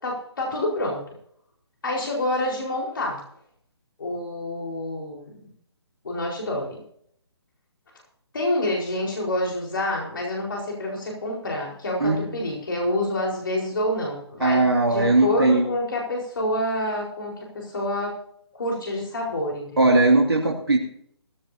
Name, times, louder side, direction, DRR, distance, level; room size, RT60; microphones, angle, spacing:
voice 1, 0.0-1.0 1.8-3.2 4.0-5.5 6.0-6.8 8.3-18.2 18.5-20.0, left 1 dB, 50° left, -1 dB, 4.7 m, -27 dB
voice 2, 14.4-15.7 19.8-20.8, right 2 dB, 60° right, 1 dB, 2.5 m, -19 dB
17.5 x 16.0 x 2.8 m, 0.67 s
figure-of-eight pair, 140°, 14 cm